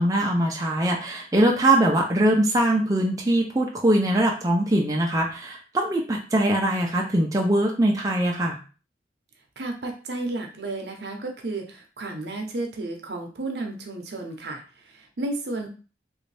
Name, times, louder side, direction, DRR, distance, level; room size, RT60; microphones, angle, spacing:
voice 1, 0.0-8.6, right 1 dB, 20° right, -1 dB, 0.5 m, -22 dB
voice 2, 9.6-15.7, right 2 dB, 65° right, 3 dB, 0.7 m, -32 dB
3.1 x 2.6 x 3.3 m, 0.35 s
head